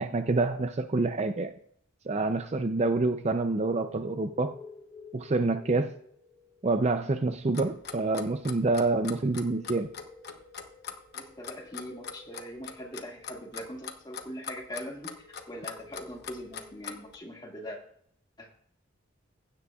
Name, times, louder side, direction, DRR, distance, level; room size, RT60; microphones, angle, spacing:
voice 1, 0.0-1.5 2.1-4.5 5.1-5.9 6.6-9.9, right 3 dB, 35° right, 8 dB, 0.5 m, -27 dB
sound 1, 3.2-17.4, left 3 dB, 5° left, 2.8 m, -53 dB
Clock, 7.5-17.2, left 7 dB, 55° left, 0.9 m, -41 dB
voice 2, 11.1-17.8 18.4-18.5, equal, 20° left, 0 dB, 1.9 m, -42 dB
16.0 x 9.7 x 2.4 m, 0.65 s
head